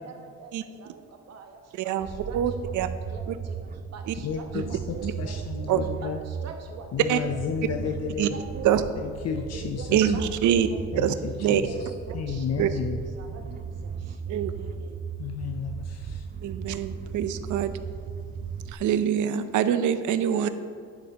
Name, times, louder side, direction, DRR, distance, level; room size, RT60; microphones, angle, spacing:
voice 1, 0.0-8.9 9.2-11.1 11.4-15.1, right 5 dB, 55° right, 3 dB, 1.1 m, -45 dB
voice 2, 1.7-2.1 2.3-2.9 4.1-4.2 4.5-5.1 5.7-5.8 7.1-7.2 8.2-8.3 8.6-8.8 9.9-10.7 11.0-11.1 11.4-11.6 12.6-12.7 14.3-14.5 16.4-17.7 18.7-20.5, right 10 dB, 75° right, 11 dB, 0.6 m, -24 dB
sound 1, 2.0-18.7, right 6 dB, 30° right, 0.4 m, -36 dB
voice 3, 4.2-6.2 6.9-8.3 9.0-10.0 10.9-11.7 12.1-13.0 15.2-16.2, left 7 dB, 60° left, 5 dB, 0.6 m, -32 dB
10.5 x 9.9 x 2.9 m, 2.1 s
cardioid pair, 90°, 30 cm